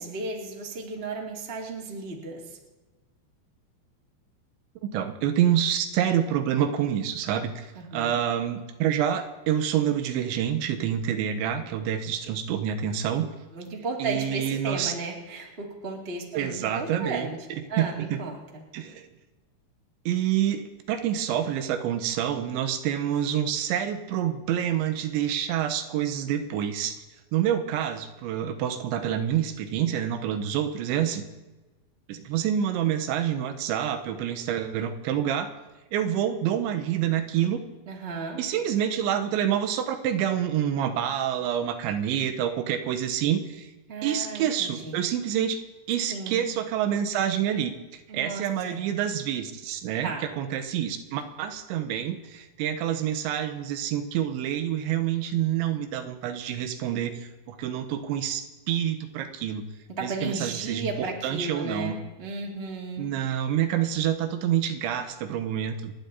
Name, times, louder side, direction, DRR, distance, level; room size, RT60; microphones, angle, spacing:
voice 1, 0.0-2.6 7.7-8.2 13.5-17.4 17.7-18.6 37.8-38.4 43.9-45.0 46.1-46.4 48.1-48.8 50.0-50.2 59.9-63.1, right 3 dB, 20° right, -1 dB, 1.5 m, -34 dB
voice 2, 4.8-7.7 7.9-13.3 14.0-14.9 16.4-18.2 18.7-19.1 20.1-27.0 27.3-31.3 32.1-35.5 35.9-37.6 38.4-43.7 44.0-45.6 45.9-59.7 60.0-62.0 63.0-65.9, right 10 dB, 85° right, 7 dB, 3.5 m, -27 dB
28.5 x 10.0 x 4.1 m, 1.1 s
omnidirectional pair, 5.1 m